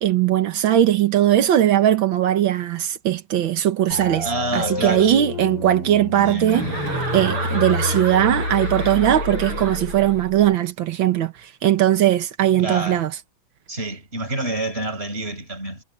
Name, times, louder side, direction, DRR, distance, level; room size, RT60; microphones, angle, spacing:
voice 1, 0.0-6.7 7.1-13.2, right 12 dB, 70° right, 1.2 m, -19 dB
sound 1, 3.9-10.6, left 2 dB, 45° left, 7.7 m, -29 dB
voice 2, 4.2-5.1 6.2-6.5 12.6-13.0 13.7-15.8, right 2 dB, 20° right, 6.3 m, -28 dB
Chuckle chortle, 6.5-10.2, right 2 dB, 40° right, 6.3 m, -30 dB
omnidirectional pair, 3.6 m